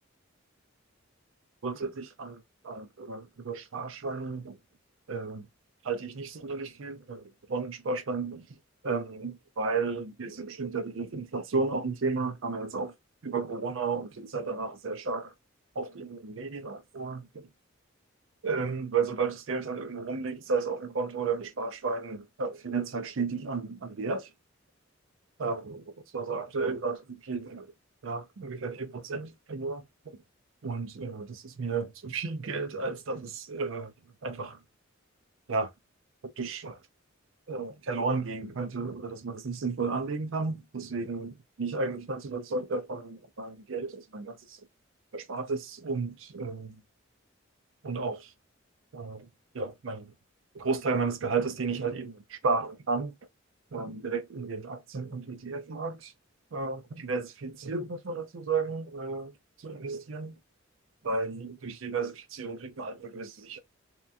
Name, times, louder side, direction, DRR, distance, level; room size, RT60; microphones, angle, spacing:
voice 1, 1.6-4.6 5.1-5.5 5.8-8.5 8.8-12.9 13.2-15.3 15.8-17.5 18.4-24.3 25.4-27.7 28.0-30.2 30.6-33.9 34.2-34.6 35.5-35.7 36.2-36.8 37.5-44.6 45.1-46.8 47.8-48.3 48.9-49.3 49.5-50.1 50.5-53.1 53.7-56.1 56.5-59.3 59.6-60.4 61.0-63.6, right 4 dB, 70° right, 0.5 m, -33 dB
2.9 x 2.2 x 2.5 m
head